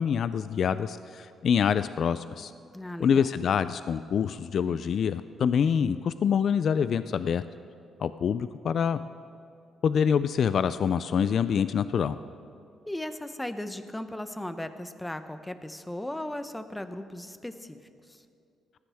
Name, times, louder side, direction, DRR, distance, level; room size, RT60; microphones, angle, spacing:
voice 1, 0.0-2.5 3.0-7.4 8.0-9.0 9.8-12.2, left 7 dB, 60° left, 13 dB, 0.3 m, -26 dB
voice 2, 2.7-3.2 12.9-17.8, left 1 dB, 10° left, 10 dB, 0.8 m, -37 dB
18.5 x 14.5 x 3.5 m, 2.5 s
cardioid pair, 90°, 0 cm